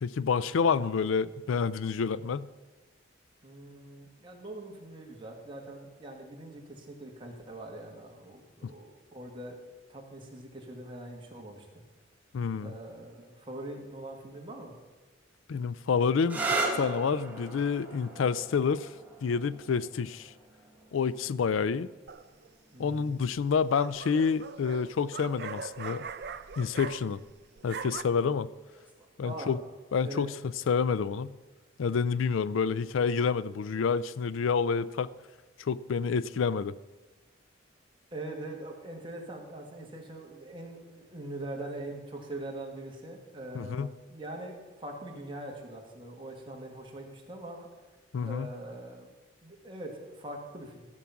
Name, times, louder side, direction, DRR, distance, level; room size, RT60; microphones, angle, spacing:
voice 1, 0.0-2.5 8.6-8.7 12.3-12.7 15.5-16.4 16.8-18.9 19.2-20.3 20.9-21.9 22.8-26.0 26.6-27.2 27.6-28.5 29.2-29.6 29.9-31.3 31.8-35.1 35.6-36.7 43.5-43.9 48.1-48.5, left 5 dB, 80° left, 18 dB, 0.4 m, -28 dB
voice 2, 3.4-9.6 9.9-11.7 12.6-14.7 22.7-23.2 29.2-29.5 30.0-30.3 38.1-47.7 48.2-49.1 49.4-50.9, right 1 dB, 25° right, 0 dB, 2.1 m, -42 dB
sound 1, 16.2-23.7 24.7-25.2 28.7-29.1, right 3 dB, 10° right, 1.7 m, -38 dB
sound 2, 22.1-22.5 23.4-27.3 27.6-28.0, right 6 dB, 55° right, 0.6 m, -41 dB
14.5 x 7.4 x 5.8 m, 1.2 s
head